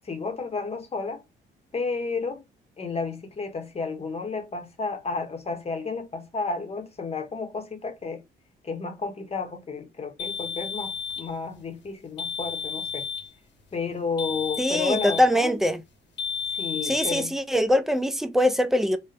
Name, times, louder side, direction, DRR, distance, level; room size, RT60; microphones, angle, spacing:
voice 1, 0.0-1.2 1.7-2.4 2.8-8.2 8.6-13.0 13.7-15.6 16.5-17.3, left 4 dB, 30° left, 0.8 m, -32 dB
sound 1, 10.2-11.3 12.2-13.3 14.2-15.3 16.2-17.2, left 7 dB, 65° left, 0.9 m, -32 dB
voice 2, 14.6-15.8 16.8-19.0, equal, ahead, 0.4 m, -23 dB
3.6 x 2.1 x 2.6 m
cardioid pair, 90°, 20 cm